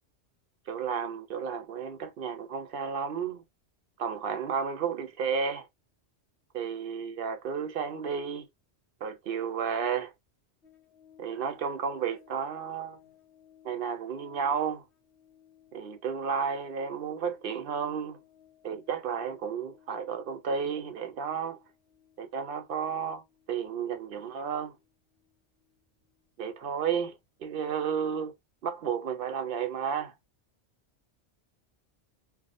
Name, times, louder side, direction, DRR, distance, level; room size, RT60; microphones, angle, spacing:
voice 1, 0.7-3.4 4.0-5.7 6.5-8.5 9.0-10.1 11.2-13.0 13.6-14.8 15.7-18.2 18.6-21.6 22.2-23.2 23.5-24.8 26.4-28.3 28.6-30.1, right 6 dB, 60° right, 0.7 m, -32 dB
sound 1, 10.6-27.2 27.5-27.6, left 10 dB, 70° left, 0.9 m, -61 dB
2.4 x 2.0 x 2.4 m
omnidirectional pair, 1.2 m